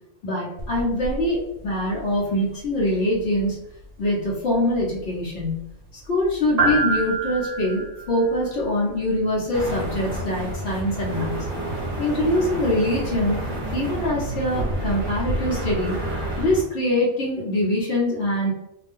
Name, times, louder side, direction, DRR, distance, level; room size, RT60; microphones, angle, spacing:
voice 1, 0.2-3.6 4.0-5.7 6.1-11.5 12.0-13.4 13.7-16.0 16.4-18.5, left 1 dB, 65° left, -6 dB, 1.2 m, -24 dB
sound 1, 0.6-15.7, right 2 dB, 65° right, 0.7 m, -32 dB
sound 2, 9.5-16.6, right 1 dB, 25° right, 0.8 m, -30 dB
2.6 x 2.3 x 3.5 m, 0.83 s
omnidirectional pair, 1.2 m